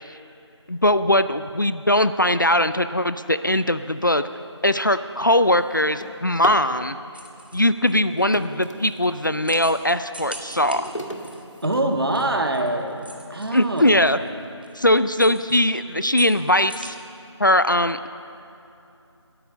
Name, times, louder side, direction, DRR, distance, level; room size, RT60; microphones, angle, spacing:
voice 1, 0.7-4.2 4.6-7.0 7.5-10.8 13.5-14.2 14.8-16.9 17.4-18.1, left 1 dB, 45° left, 12 dB, 0.3 m, -20 dB
Drawer open or close, 4.1-4.3 4.8-6.7 7.8-9.4 9.9-12.4 13.0-13.1 13.6-13.7 14.1-14.5, equal, 85° left, 1.7 m, -37 dB
sound 1, 7.1-16.9, equal, 20° right, 0.6 m, -44 dB
voice 2, 11.6-14.0, right 1 dB, 55° right, 4 dB, 1.4 m, -24 dB
14.5 x 11.0 x 7.0 m, 2.8 s
figure-of-eight pair, 170°, 15 cm